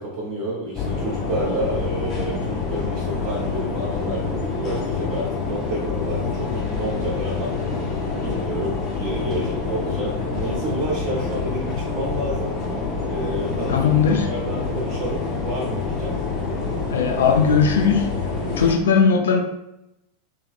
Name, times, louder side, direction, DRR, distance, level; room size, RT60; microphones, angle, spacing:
voice 1, 0.0-7.9 8.2-12.5 13.1-13.9 14.3-16.2, right 1 dB, 50° right, -7 dB, 0.8 m, -30 dB
sound 1, 0.7-18.7, left 4 dB, 35° left, 0.7 m, -27 dB
voice 2, 13.7-14.3 16.9-18.1 18.6-19.4, left 6 dB, 65° left, 2 dB, 0.3 m, -18 dB
2.8 x 2.8 x 2.4 m, 0.86 s
figure-of-eight pair, 85°, 0 cm